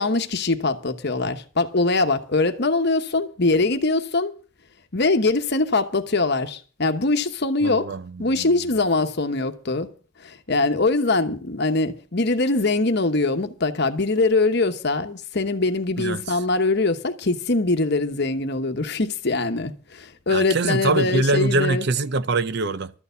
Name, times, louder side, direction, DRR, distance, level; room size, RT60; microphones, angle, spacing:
voice 1, 0.0-4.4 4.9-7.9 8.2-9.9 10.2-21.9, left 3 dB, 50° left, 1.0 m, -22 dB
voice 2, 7.6-8.6 16.0-16.4 20.3-22.9, right 3 dB, 50° right, 0.6 m, -24 dB
13.0 x 6.8 x 8.1 m
head